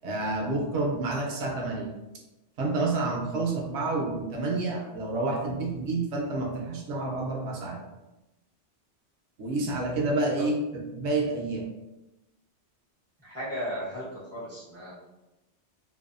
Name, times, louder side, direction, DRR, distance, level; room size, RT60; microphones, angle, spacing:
voice 1, 0.0-1.9 2.6-7.8 9.4-11.6, right 2 dB, 75° right, -1 dB, 0.8 m, -29 dB
voice 2, 13.2-14.9, equal, 15° left, -8 dB, 0.5 m, -35 dB
2.6 x 2.2 x 2.4 m, 1.0 s
omnidirectional pair, 1.2 m